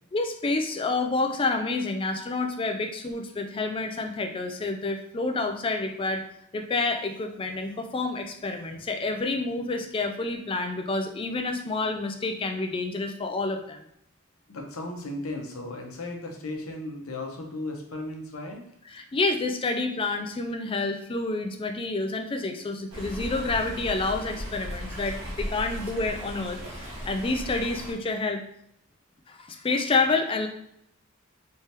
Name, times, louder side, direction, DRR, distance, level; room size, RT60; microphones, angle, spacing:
voice 1, 0.1-6.2 6.5-13.8 18.9-28.4 29.3-30.5, left 3 dB, 25° left, 5 dB, 0.3 m, -28 dB
voice 2, 14.5-18.6, left 2 dB, 75° left, 2 dB, 0.8 m, -35 dB
Stream, 22.9-27.9, equal, 65° right, 1.3 m, -37 dB
3.3 x 3.3 x 2.8 m, 0.75 s
head